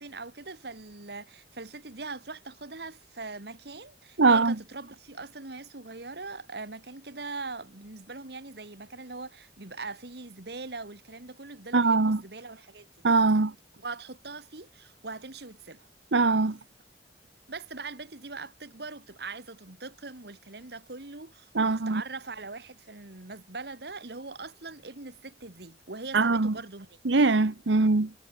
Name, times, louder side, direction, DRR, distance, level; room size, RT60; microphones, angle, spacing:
voice 1, 0.0-12.9 13.8-15.9 17.5-26.9, right 3 dB, 60° right, 1.8 m, -41 dB
voice 2, 4.2-4.6 11.7-12.2 13.0-13.5 16.1-16.6 21.5-22.0 26.1-26.6 27.0-28.1, right 3 dB, 80° right, 1.0 m, -22 dB
head